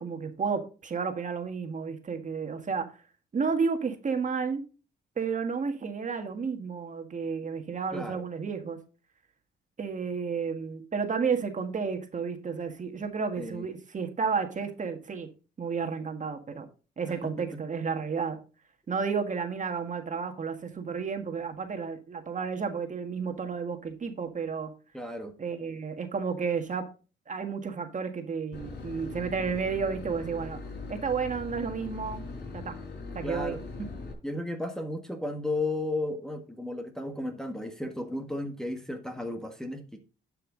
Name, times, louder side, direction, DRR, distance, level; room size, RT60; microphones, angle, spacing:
voice 1, 0.0-2.9 3.3-4.6 5.2-8.8 9.8-15.3 15.6-16.7 17.0-18.4 18.9-24.7 25.4-26.9 27.3-30.6 30.9-32.2 32.5-32.7 33.1-33.9, right 5 dB, 40° right, 6 dB, 1.7 m, -32 dB
voice 2, 7.9-8.2 13.4-13.6 17.2-17.6 24.9-25.3 33.2-33.6 34.2-40.0, left 2 dB, 5° left, 4 dB, 1.4 m, -34 dB
Boat Water vehicle / Engine, 28.5-34.1, left 3 dB, 55° left, 4.6 m, -40 dB
11.0 x 5.8 x 3.9 m, 0.34 s
cardioid pair, 90°, 20 cm